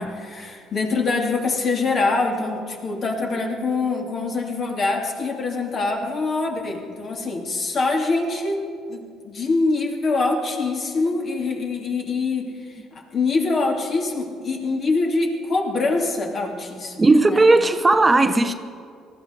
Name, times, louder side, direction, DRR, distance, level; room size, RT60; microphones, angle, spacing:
voice 1, 0.0-8.6 8.9-12.5 12.9-17.4, left 3 dB, 50° left, 2.7 m, -24 dB
voice 2, 17.0-18.5, right 2 dB, 25° right, 0.8 m, -16 dB
19.0 x 13.5 x 5.3 m
hypercardioid pair, 65°, 0 cm